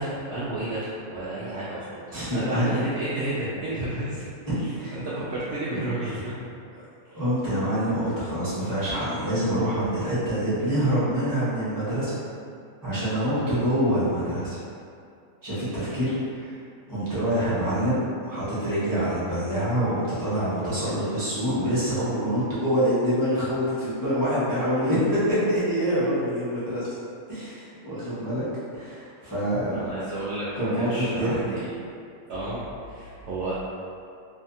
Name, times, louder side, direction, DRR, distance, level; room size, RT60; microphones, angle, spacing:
voice 1, 0.0-2.0 2.3-4.3 4.6-6.3 7.1-7.2 29.7-31.8 32.3-33.5, right 1 dB, 65° right, -9 dB, 0.6 m, -31 dB
voice 2, 2.1-2.7 4.5-5.0 6.7-6.8 7.1-12.2 12.8-14.6 15.4-16.5 16.9-26.9 27.3-28.5 28.7-29.8 30.6-31.4, equal, 20° right, -12 dB, 0.7 m, -26 dB
2.7 x 2.3 x 2.6 m, 2.4 s
omnidirectional pair, 1.6 m